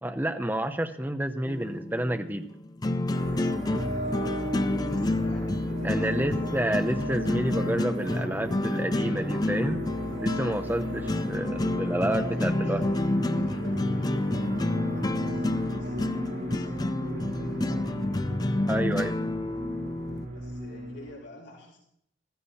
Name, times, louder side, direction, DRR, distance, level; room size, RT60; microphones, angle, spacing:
voice 1, 0.0-2.4 5.8-9.8 10.2-12.8 18.7-19.2, right 1 dB, 10° right, 7 dB, 0.8 m, -29 dB
sound 1, 1.5-20.3, left 1 dB, 20° left, 0.4 m, -29 dB
sound 2, 3.1-21.2, equal, 85° right, 3.6 m, -36 dB
voice 2, 3.6-6.8 12.1-18.0 20.3-21.8, left 1 dB, 75° left, -5 dB, 4.7 m, -49 dB
15.5 x 14.5 x 4.3 m, 0.72 s
head